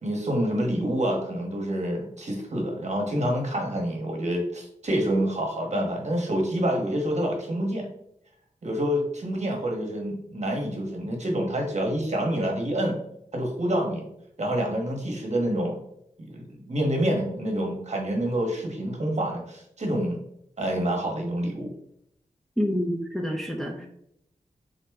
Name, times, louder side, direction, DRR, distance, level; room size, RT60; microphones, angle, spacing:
voice 1, 0.0-7.9 8.6-13.0 13.3-14.1 14.4-15.8 16.2-20.2 20.6-21.7, right 1 dB, 50° right, 0 dB, 1.0 m, -27 dB
voice 2, 22.6-23.9, equal, ahead, 1 dB, 0.5 m, -27 dB
3.8 x 2.1 x 3.4 m, 0.75 s
cardioid pair, 45°, 15 cm